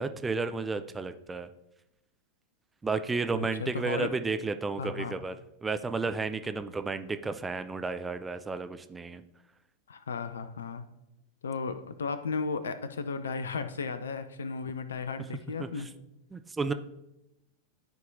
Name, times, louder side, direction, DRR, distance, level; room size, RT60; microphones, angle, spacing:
voice 1, 0.0-1.5 2.8-5.4 5.6-9.2 15.6-15.7 16.3-16.7, right 4 dB, 15° right, 9 dB, 0.4 m, -32 dB
voice 2, 3.3-4.1 4.8-5.1 9.9-10.8 11.4-15.9, left 4 dB, 70° left, 12 dB, 0.6 m, -35 dB
13.5 x 4.6 x 2.7 m, 0.90 s
figure-of-eight pair, 90°, 0 cm